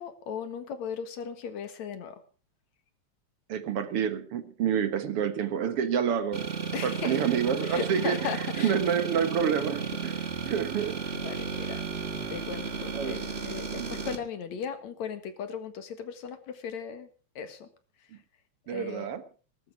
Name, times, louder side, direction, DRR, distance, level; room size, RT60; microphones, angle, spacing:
voice 1, 0.0-2.2 6.7-7.2 7.6-8.8 10.5-10.6 11.1-11.9 12.3-17.1 17.4-17.7 18.0-18.2 18.7-19.1, left 7 dB, 70° left, 2.9 m, -37 dB
voice 2, 3.5-6.5 6.8-8.2 8.6-10.1 10.4-11.0 12.9-13.2 13.7-14.0 18.7-19.2, right 8 dB, 55° right, 2.0 m, -28 dB
sound 1, 6.3-14.2, right 5 dB, 35° right, 1.1 m, -34 dB
19.5 x 12.5 x 4.7 m
omnidirectional pair, 3.4 m